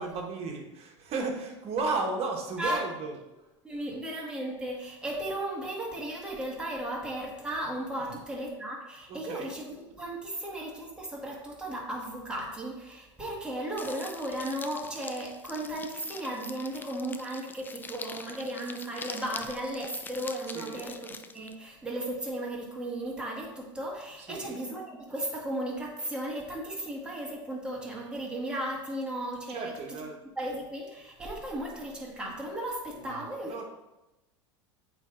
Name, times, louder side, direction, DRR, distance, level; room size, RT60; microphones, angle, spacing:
voice 1, 0.0-3.2 8.0-8.1 9.1-9.5 20.5-20.9 24.2-24.6 29.5-30.2 32.9-33.6, right 3 dB, 40° right, 1 dB, 1.4 m, -34 dB
voice 2, 3.6-30.0 30.3-33.6, right 1 dB, 5° right, -3 dB, 1.7 m, -35 dB
sound 1, 13.8-21.6, left 4 dB, 15° left, 0.3 m, -44 dB
8.0 x 3.4 x 3.9 m, 0.99 s
hypercardioid pair, 105°, 15 cm